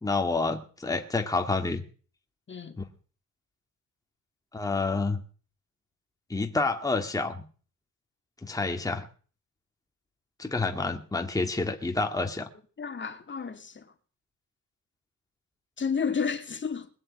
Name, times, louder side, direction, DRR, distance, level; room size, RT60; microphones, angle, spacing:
voice 1, 0.0-1.8 2.8-2.9 4.5-5.2 6.3-7.5 8.4-9.1 10.4-12.5, left 3 dB, 10° left, 2.1 m, -28 dB
voice 2, 12.8-13.9 15.8-16.9, left 6 dB, 35° left, 2.5 m, -31 dB
21.0 x 7.6 x 8.7 m
cardioid pair, 75°, 32 cm